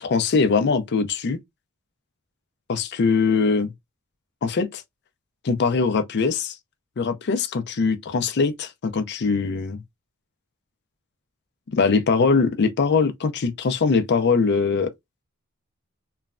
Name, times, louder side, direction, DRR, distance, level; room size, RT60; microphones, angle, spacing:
voice 1, 0.0-1.4 2.7-3.7 4.4-4.8 5.4-6.6 7.0-9.8 11.8-14.9, left 4 dB, 50° left, 0.5 m, -22 dB
3.1 x 2.2 x 2.3 m
head